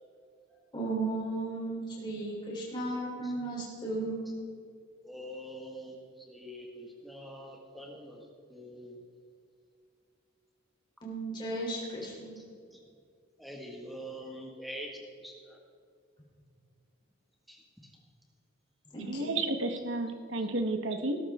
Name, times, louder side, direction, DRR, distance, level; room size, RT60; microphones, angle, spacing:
voice 1, 0.7-4.2 11.0-12.3 18.9-19.4, right 2 dB, 20° left, -4 dB, 3.5 m, -35 dB
voice 2, 5.0-9.0 12.4-12.5 12.7-12.8 13.4-15.6 17.5-17.9 20.4-20.5, equal, ahead, -1 dB, 1.8 m, -45 dB
voice 3, 19.1-21.2, right 2 dB, 65° right, 6 dB, 1.3 m, -31 dB
19.5 x 12.5 x 3.7 m, 2.3 s
head